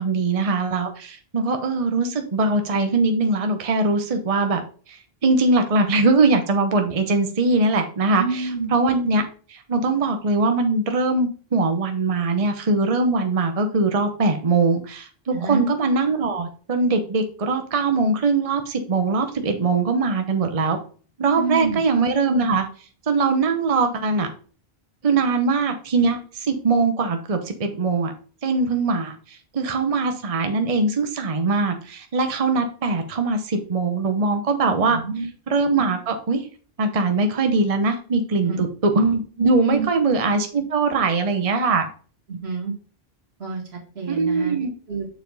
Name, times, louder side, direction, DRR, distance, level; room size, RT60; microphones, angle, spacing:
voice 1, 0.0-4.6 4.9-9.2 9.5-20.8 21.2-22.6 23.1-24.3 25.0-28.1 28.4-35.0 35.5-36.4 36.8-41.9 44.1-44.7, right 3 dB, 35° right, 6 dB, 0.9 m, -21 dB
voice 2, 8.2-8.7 15.3-15.6 21.4-21.8 34.9-35.3 38.5-38.6 39.6-39.9 42.3-42.7 43.4-44.6 44.9-45.1, right 4 dB, 80° right, -1 dB, 2.3 m, -28 dB
7.0 x 4.6 x 4.0 m, 0.40 s
omnidirectional pair, 1.1 m